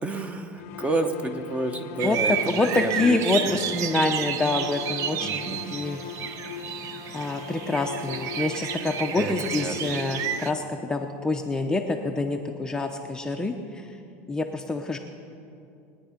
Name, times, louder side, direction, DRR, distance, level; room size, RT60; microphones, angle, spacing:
voice 1, 0.0-2.3 2.8-3.2 3.4-3.5 5.2-5.7 9.2-9.3 9.6-9.9, right 2 dB, 20° right, 7 dB, 1.1 m, -30 dB
sound 1, 0.6-10.8, left 8 dB, 80° left, 0.8 m, -41 dB
voice 2, 2.0-5.4 5.7-6.0 7.1-13.9 14.3-15.0, left 2 dB, 10° left, 3 dB, 0.7 m, -26 dB
sound 2, 2.0-10.5, right 8 dB, 50° right, 0.7 m, -31 dB
21.0 x 9.6 x 5.1 m, 2.5 s
supercardioid pair, 130°, 7 cm